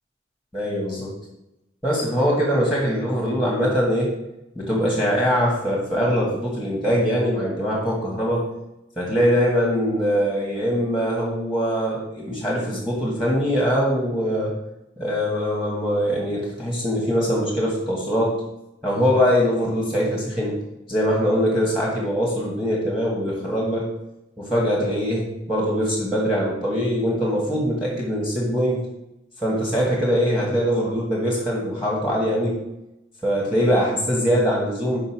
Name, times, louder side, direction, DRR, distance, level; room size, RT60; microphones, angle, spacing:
voice 1, 0.5-1.1 1.8-4.1 4.6-8.5 9.0-14.5 15.0-18.4 18.8-20.5 20.9-23.8 24.4-28.8 29.4-32.6 33.2-35.0, equal, ahead, -3 dB, 1.7 m, -22 dB
5.4 x 5.2 x 6.0 m, 0.90 s
head